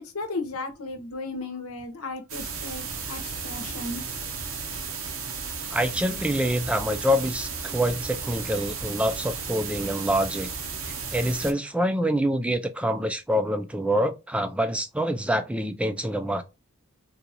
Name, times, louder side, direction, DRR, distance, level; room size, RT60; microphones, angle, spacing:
voice 1, 0.1-4.0, left 2 dB, 85° left, 0.9 m, -35 dB
sound 1, 2.3-11.5, right 5 dB, 65° right, 0.7 m, -34 dB
voice 2, 5.7-10.5 11.1-16.4, equal, 5° right, 0.3 m, -26 dB
3.8 x 2.4 x 2.8 m
head